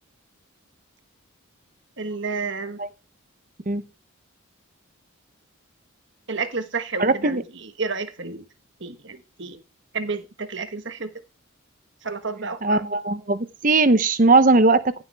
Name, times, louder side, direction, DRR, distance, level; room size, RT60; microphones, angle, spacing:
voice 1, 2.0-2.8 6.3-8.4 8.8-9.6 9.9-11.1 12.0-12.8, right 4 dB, 55° right, 1.3 m, -31 dB
voice 2, 7.0-7.4 12.6-15.0, right 3 dB, 40° right, 0.8 m, -19 dB
15.5 x 7.1 x 3.5 m
head